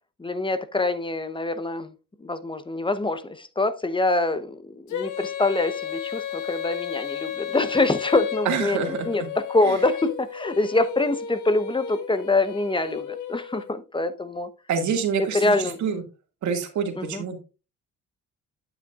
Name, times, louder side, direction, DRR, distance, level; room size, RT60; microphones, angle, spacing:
voice 1, 0.2-1.9 2.2-9.2 9.5-14.5 15.2-15.8 17.0-17.2, left 2 dB, 15° left, 0.9 m, -25 dB
Female singing, 4.9-13.7, left 8 dB, 75° left, 1.5 m, -33 dB
voice 2, 8.5-9.3 9.6-9.8 14.7-16.0 16.4-17.4, right 6 dB, 70° right, 2.2 m, -27 dB
9.0 x 8.1 x 2.4 m
cardioid pair, 90°, 30 cm